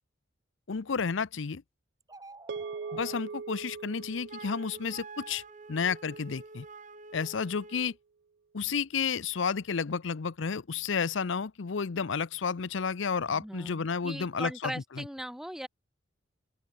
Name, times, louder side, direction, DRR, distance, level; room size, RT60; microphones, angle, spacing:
voice 1, 0.7-1.6 2.9-5.4 5.7-6.7 7.1-7.9 8.5-15.0, left 5 dB, 70° left, 0.6 m, -31 dB
sound 1, 2.0-3.2, right 2 dB, 20° right, 4.8 m, -50 dB
sound 2, 2.5-7.0, right 5 dB, 60° right, 0.4 m, -42 dB
Wind instrument woodwind instrument, 4.3-8.0, right 3 dB, 40° right, 2.0 m, -47 dB
voice 2, 13.3-15.7, equal, ahead, 2.3 m, -39 dB
open air
head